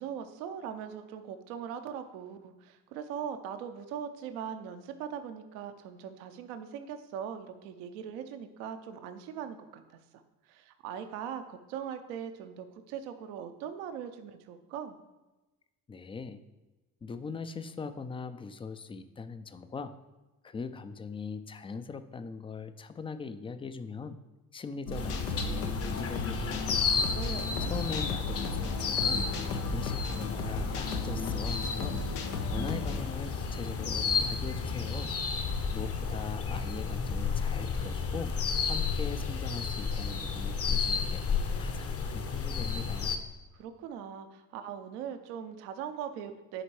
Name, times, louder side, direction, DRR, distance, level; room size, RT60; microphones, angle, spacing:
voice 1, 0.0-10.0 10.5-15.0 26.8-27.7 43.5-46.6, right 8 dB, 65° right, 8 dB, 0.7 m, -40 dB
voice 2, 15.9-16.4 17.0-19.9 20.4-24.2 24.5-26.7 27.6-29.3 29.5-32.0 32.4-38.3 38.7-41.2 41.6-43.2, left 5 dB, 15° left, 11 dB, 0.4 m, -41 dB
sound 1, 24.9-33.0, left 3 dB, 85° left, 0.7 m, -35 dB
sound 2, 25.0-43.2, left 5 dB, 30° left, 0.8 m, -32 dB
10.0 x 4.3 x 3.1 m, 1.1 s
figure-of-eight pair, 50°, 45 cm